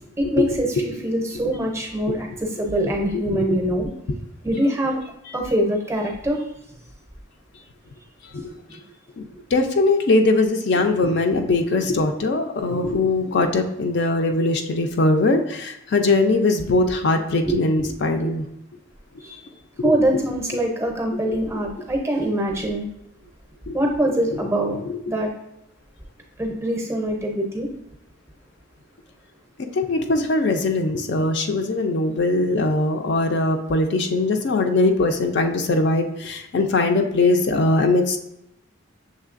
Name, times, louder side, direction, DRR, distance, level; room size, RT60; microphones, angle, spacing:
voice 1, 0.2-0.7 1.0-3.9 4.4-5.0 5.3-6.4 8.4-8.5 17.5-17.9 18.2-18.3 19.2-19.4 19.8-22.9 23.7-24.7 25.1-25.3 26.4-27.7, right 1 dB, 15° right, 1 dB, 0.5 m, -23 dB
voice 2, 2.1-2.4 3.1-3.6 5.3-5.4 8.3-8.5 9.2-9.3 9.5-18.5 19.8-19.9 23.7-23.8 24.8-25.0 29.7-38.2, left 2 dB, 55° left, 5 dB, 0.4 m, -21 dB
6.5 x 3.1 x 2.4 m, 0.82 s
head